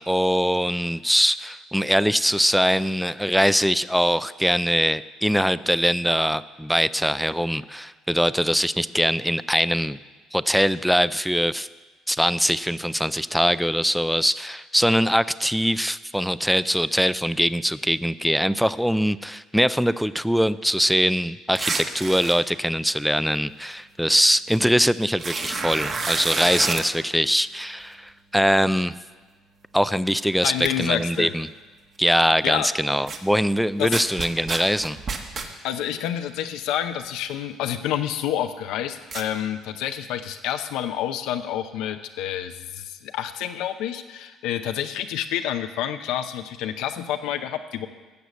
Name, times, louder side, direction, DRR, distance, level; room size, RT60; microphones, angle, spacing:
voice 1, 0.0-10.0 10.3-11.7 12.1-29.0 29.7-31.5 32.0-35.0, equal, ahead, 16 dB, 0.3 m, -22 dB
sound 1, 21.6-22.3 24.5-24.6 25.1-26.8 30.2-30.3 30.6-30.7 33.1-33.2 33.9-35.5 39.1-39.2, right 4 dB, 40° right, 1.3 m, -29 dB
voice 2, 30.4-31.3 32.2-32.7 33.8-34.0 35.6-47.9, left 10 dB, 85° left, 7 dB, 0.6 m, -28 dB
14.0 x 6.7 x 8.3 m, 1.3 s
cardioid pair, 130°, 0 cm